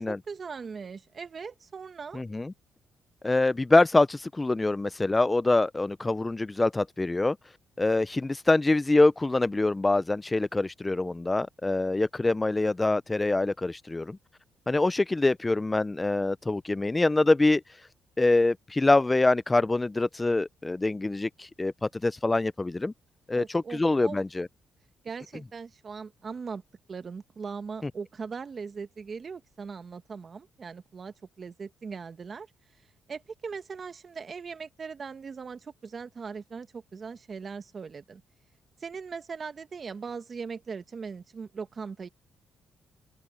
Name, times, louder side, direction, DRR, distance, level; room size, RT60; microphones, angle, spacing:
voice 1, 0.0-2.2 23.3-24.2 25.0-26.6 26.9-32.5 33.1-38.2 38.8-42.1, right 5 dB, 40° right, 1.6 m, -39 dB
voice 2, 2.1-2.5 3.2-7.4 7.8-14.2 14.7-17.6 18.2-22.9 23.3-24.5, left 2 dB, 20° left, 0.3 m, -25 dB
cardioid pair, 90°, 0 cm